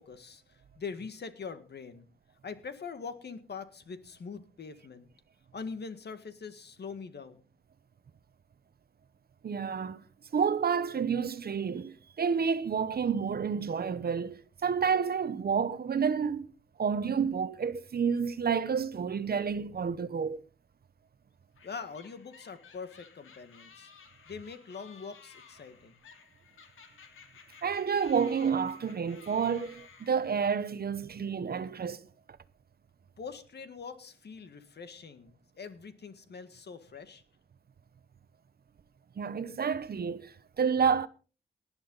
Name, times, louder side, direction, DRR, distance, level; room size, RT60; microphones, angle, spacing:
voice 1, 0.0-2.1 2.4-5.1 5.5-7.4 21.6-23.9 24.3-26.0 33.2-37.2, left 5 dB, 55° left, 1.8 m, -43 dB
voice 2, 9.4-10.0 10.3-16.5 16.8-20.4 27.6-32.0 39.2-41.1, right 6 dB, 50° right, 0.9 m, -29 dB
sound 1, 21.6-30.6, left 6 dB, 90° left, 2.5 m, -55 dB
18.5 x 10.5 x 4.0 m
wide cardioid pair, 120°, 20 cm